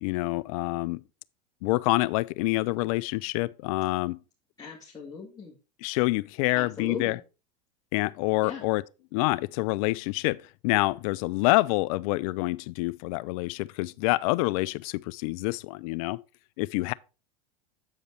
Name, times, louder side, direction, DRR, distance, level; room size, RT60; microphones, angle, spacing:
voice 1, 0.0-1.0 1.6-4.2 5.8-7.2 7.9-8.8 9.1-16.2 16.6-16.9, left 21 dB, 60° left, 0.4 m, -27 dB
voice 2, 4.6-5.5 6.5-7.2 8.4-8.6, left 5 dB, 20° left, 2.0 m, -38 dB
8.2 x 5.1 x 4.2 m
hypercardioid pair, 95°, 20 cm